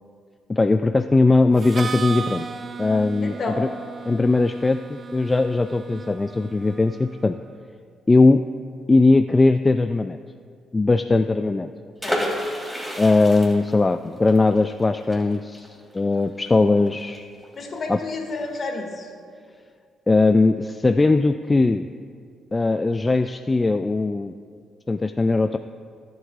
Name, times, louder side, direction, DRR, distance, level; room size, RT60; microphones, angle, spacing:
voice 1, 0.5-2.5 2.8-3.7 4.1-7.3 8.1-8.4 8.9-10.2 10.7-11.7 13.0-15.7 15.9-17.3 17.9-18.0 20.1-21.8 22.5-24.4 24.9-25.6, left 3 dB, 20° left, 8 dB, 0.3 m, -19 dB
Harmonica, 1.6-7.3, right 5 dB, 40° right, 0.5 m, -36 dB
voice 2, 3.2-3.6 12.0-12.3 17.5-19.1, left 3 dB, 45° left, 1 dB, 2.0 m, -30 dB
sound 1, 12.0-17.6 17.9-18.0 18.3-18.6, equal, 5° right, 2.4 m, -31 dB
23.0 x 8.0 x 2.4 m, 2.2 s
cardioid pair, 90°, 0 cm